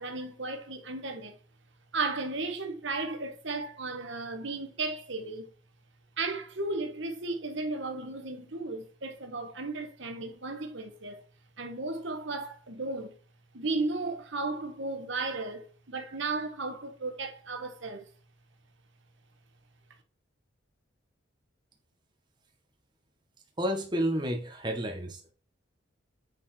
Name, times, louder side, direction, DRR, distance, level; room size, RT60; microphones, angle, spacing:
voice 1, 0.0-1.4 1.9-5.5 6.2-11.2 11.6-13.1 13.5-18.0, right 3 dB, 60° right, 1.5 m, -35 dB
voice 2, 23.6-25.3, equal, 20° right, 1.6 m, -30 dB
9.6 x 4.6 x 4.6 m
head